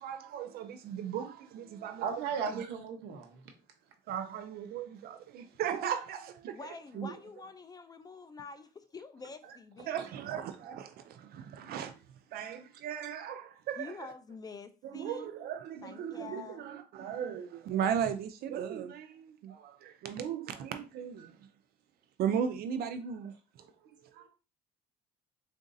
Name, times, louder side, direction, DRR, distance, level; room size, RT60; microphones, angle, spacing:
voice 1, 0.0-2.1 2.4-2.5 4.1-6.6 6.9-7.1 9.9-11.9 12.3-13.9 14.9-21.4 22.2-23.3, right 8 dB, 65° right, 0.4 m, -36 dB
voice 2, 2.0-3.4 11.2-11.3 23.8-24.3, right 6 dB, 85° right, 0.8 m, -37 dB
voice 3, 6.5-10.0 13.8-15.4 15.8-16.7, left 4 dB, 25° left, 0.3 m, -47 dB
3.8 x 2.5 x 2.6 m
cardioid pair, 110°, 17 cm